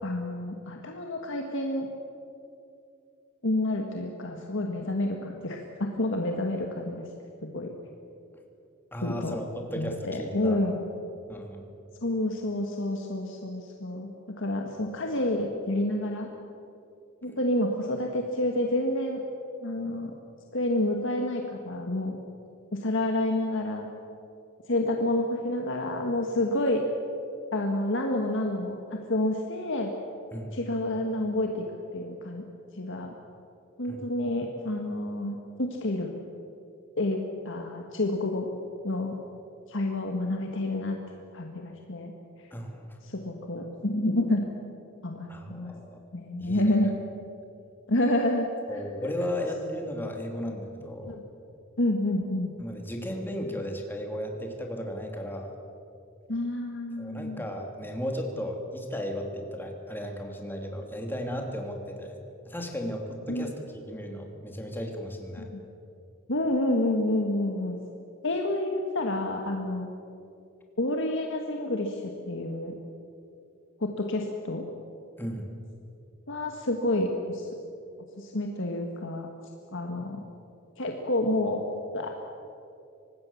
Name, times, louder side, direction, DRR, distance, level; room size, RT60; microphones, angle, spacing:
voice 1, 0.0-1.9 3.4-7.0 7.5-7.7 9.0-9.4 9.7-10.8 12.0-14.1 14.4-16.3 17.2-19.2 19.6-20.2 20.5-22.2 22.7-23.9 24.7-26.8 27.5-28.8 29.1-29.9 30.5-31.7 31.9-32.4 32.7-33.1 33.8-36.1 37.0-38.5 38.8-39.2 39.7-41.0 41.3-42.1 42.4-42.5 43.0-44.5 45.0-45.7 46.1-46.9 47.9-49.1 51.1-51.2 51.8-52.5 56.3-57.4 63.3-63.5 65.4-65.6 66.3-67.8 68.2-69.9 70.8-72.8 73.8-74.6 76.3-77.5 78.2-79.3 79.7-80.2 80.8-81.6 81.9-82.1, left 1 dB, 65° left, 2 dB, 1.8 m, -29 dB
voice 2, 8.9-10.6 11.3-11.6 17.3-17.4 30.3-30.6 33.8-34.0 42.5-43.0 45.3-46.0 46.4-46.8 48.7-51.2 52.6-55.5 57.0-62.2 62.4-65.5 75.2-75.5, equal, 10° left, 2 dB, 2.8 m, -35 dB
25.0 x 19.0 x 7.2 m, 2.6 s
head